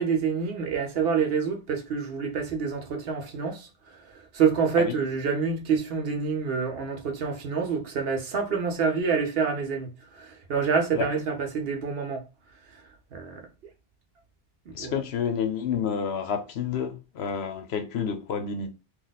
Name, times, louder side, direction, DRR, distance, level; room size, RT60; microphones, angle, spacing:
voice 1, 0.0-3.7 4.3-9.9 10.2-12.2 13.1-13.4 14.7-14.9, right 6 dB, 65° right, 0.9 m, -27 dB
voice 2, 14.7-18.7, left 7 dB, 75° left, 0.9 m, -29 dB
3.0 x 2.3 x 3.9 m
omnidirectional pair, 1.1 m